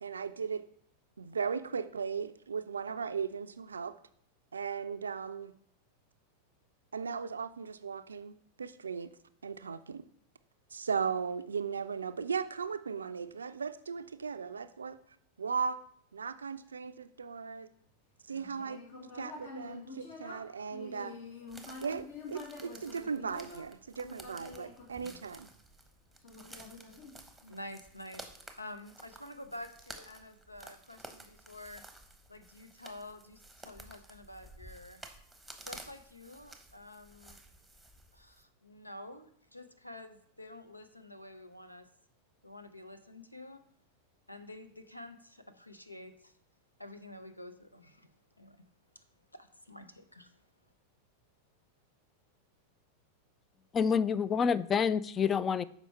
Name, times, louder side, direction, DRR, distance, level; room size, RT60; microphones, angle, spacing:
voice 1, 0.0-0.6 1.2-3.9 4.5-5.5 6.9-9.1 9.4-10.0 10.7-15.0 15.4-15.8 16.1-17.7 18.3-18.8 19.1-21.1 21.8-25.5, right 6 dB, 70° right, 0.4 m, -37 dB
Human voice, 18.3-25.6 26.2-27.7, left 3 dB, 55° left, 1.7 m, -48 dB
sound 1, 21.5-38.4, right 2 dB, 5° right, 0.9 m, -53 dB
voice 2, 27.4-28.3 28.6-31.8 32.3-35.0 35.6-37.4 38.1-41.9 42.4-43.6 44.3-46.3 46.8-48.1 48.4-48.6 49.3-50.4, left 1 dB, 85° left, 0.7 m, -49 dB
voice 3, 53.7-55.6, left 6 dB, 25° left, 0.3 m, -28 dB
6.9 x 4.7 x 4.3 m
figure-of-eight pair, 90°, 0 cm